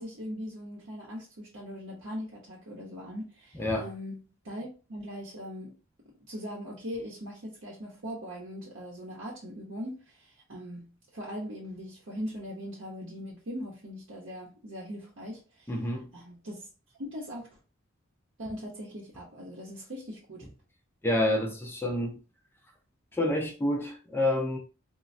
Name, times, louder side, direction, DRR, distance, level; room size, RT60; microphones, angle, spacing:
voice 1, 0.0-4.2 4.4-5.7 6.3-15.7 16.1-16.7 17.0-17.5 18.4-20.5, equal, 65° right, 0.7 m, -40 dB
voice 2, 3.5-3.9 15.7-16.1 21.0-22.2 23.1-24.6, left 1 dB, 10° left, 0.5 m, -28 dB
3.1 x 2.1 x 2.5 m
head